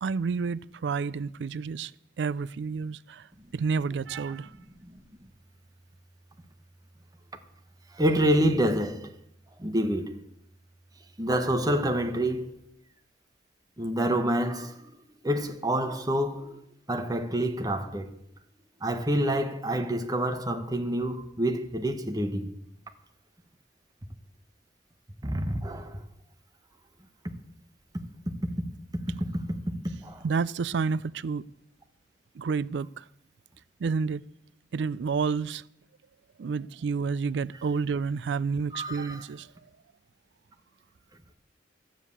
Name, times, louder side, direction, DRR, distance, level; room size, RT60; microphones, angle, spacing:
voice 1, 0.0-1.9 2.2-3.3 3.5-4.5 30.2-31.5 32.4-33.0 33.8-34.2 34.7-35.6 36.4-39.5, right 5 dB, 75° right, 0.4 m, -29 dB
voice 2, 8.0-9.1 9.6-10.2 11.2-12.5 13.8-14.9 15.2-16.5 16.9-18.1 18.8-22.5 25.2-26.0 29.3-29.4 30.0-30.2 38.7-39.2, right 1 dB, 20° right, 1.1 m, -27 dB
12.5 x 7.5 x 8.3 m
head